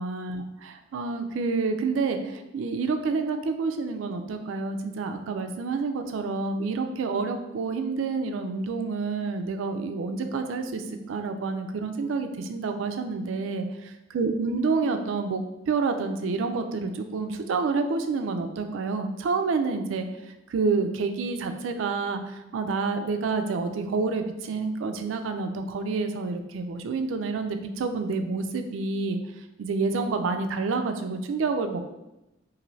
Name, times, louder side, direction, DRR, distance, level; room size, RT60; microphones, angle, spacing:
voice 1, 0.0-20.1 20.5-29.2 29.6-31.8, right 4 dB, 85° right, 7 dB, 0.3 m, -28 dB
2.6 x 2.6 x 3.1 m, 0.95 s
head